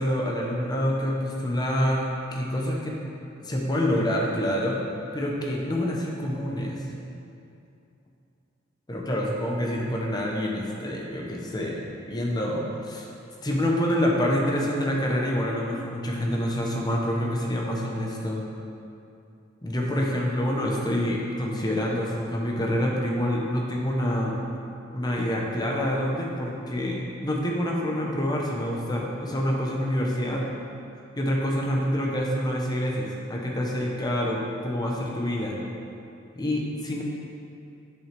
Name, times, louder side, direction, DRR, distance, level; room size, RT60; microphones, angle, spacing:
voice 1, 0.0-3.0 3.4-4.8 5.1-6.8 8.9-13.1 13.4-18.4 19.6-24.4 24.9-30.4 31.2-35.6 36.3-37.0, equal, 20° left, -2 dB, 0.9 m, -27 dB
7.7 x 6.4 x 3.4 m, 2.6 s
head